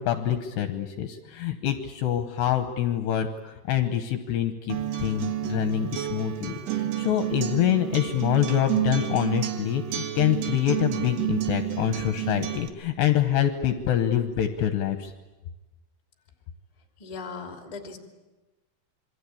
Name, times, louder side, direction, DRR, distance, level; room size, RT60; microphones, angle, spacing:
voice 1, 0.0-15.1, left 11 dB, 75° left, 8 dB, 2.7 m, -26 dB
Acoustic guitar, 4.7-12.7, right 12 dB, 60° right, 3.2 m, -30 dB
voice 2, 17.0-18.0, left 4 dB, 15° left, 3 dB, 1.3 m, -38 dB
27.5 x 23.5 x 8.6 m, 1.1 s
omnidirectional pair, 5.9 m